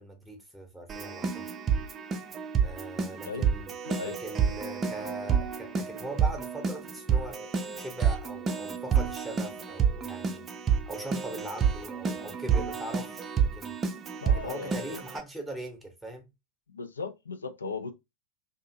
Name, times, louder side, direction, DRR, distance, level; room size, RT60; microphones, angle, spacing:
voice 1, 0.0-1.5 2.6-3.7 4.0-7.4 7.8-10.4 10.9-13.8 14.3-16.3, right 1 dB, ahead, 0.9 m, -41 dB
Keyboard (musical), 0.9-15.2, right 7 dB, 25° right, 0.5 m, -29 dB
voice 2, 3.9-4.2 14.2-15.0 16.7-17.9, left 4 dB, 75° left, 0.4 m, -37 dB
2.7 x 2.5 x 2.7 m
figure-of-eight pair, 90°, 0 cm